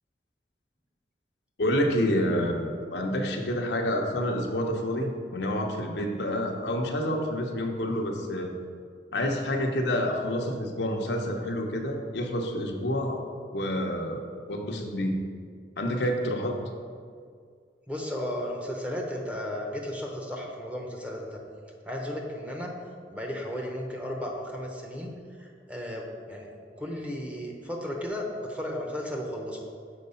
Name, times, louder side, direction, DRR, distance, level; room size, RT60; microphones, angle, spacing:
voice 1, 1.6-8.5 9.1-13.2 13.5-14.2 14.5-15.2 15.8-16.6, equal, 75° left, 2 dB, 0.8 m, -28 dB
voice 2, 17.9-21.4 21.9-22.7 23.1-25.1 25.4-26.5 26.8-29.6, left 1 dB, 5° right, 0 dB, 0.8 m, -34 dB
6.6 x 4.6 x 5.5 m, 2.1 s
head